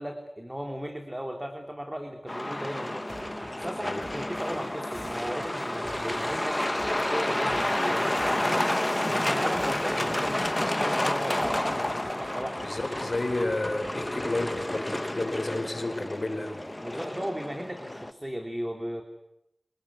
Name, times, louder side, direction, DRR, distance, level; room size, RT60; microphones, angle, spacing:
voice 1, 0.0-3.1 3.6-8.7 9.1-12.6 16.8-19.0, equal, 15° right, 4 dB, 3.3 m, -36 dB
Truck, 2.3-18.1, left 1 dB, 25° left, 1.5 m, -30 dB
sound 1, 3.1-8.7 9.5-10.8 11.4-15.1, right 2 dB, 65° right, 5.1 m, -50 dB
voice 2, 12.6-17.0, left 2 dB, 50° left, 6 dB, 5.0 m, -31 dB
28.0 x 20.0 x 9.7 m, 0.81 s
wide cardioid pair, 50°, 0 cm